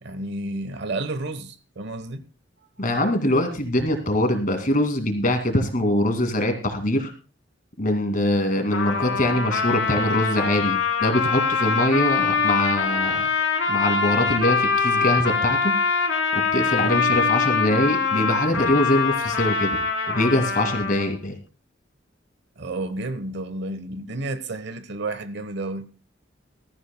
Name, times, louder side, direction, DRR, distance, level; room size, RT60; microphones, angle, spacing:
voice 1, 0.0-2.3 16.8-17.1 22.6-25.9, right 2 dB, 65° right, 1.1 m, -31 dB
voice 2, 2.8-7.1 7.8-13.3 13.7-15.7 16.3-19.8 20.1-21.4, left 1 dB, 45° left, 2.3 m, -23 dB
Trumpet, 8.7-21.2, left 5 dB, 80° left, 3.0 m, -23 dB
20.0 x 13.5 x 2.2 m
head